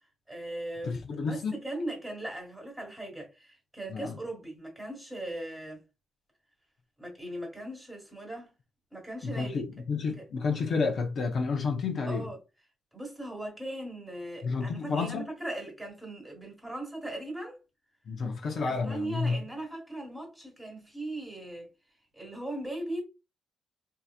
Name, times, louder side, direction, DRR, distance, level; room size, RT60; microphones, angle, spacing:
voice 1, 0.3-5.8 7.0-8.5 8.9-9.6 10.2-10.3 12.1-12.4 12.9-17.6 18.5-21.7 22.1-23.0, right 1 dB, 10° right, 1.5 m, -39 dB
voice 2, 0.8-1.5 3.9-4.1 9.2-12.3 14.4-15.3 18.1-19.4, left 4 dB, 50° left, 0.8 m, -30 dB
4.8 x 2.8 x 2.4 m
wide cardioid pair, 165°, 0 cm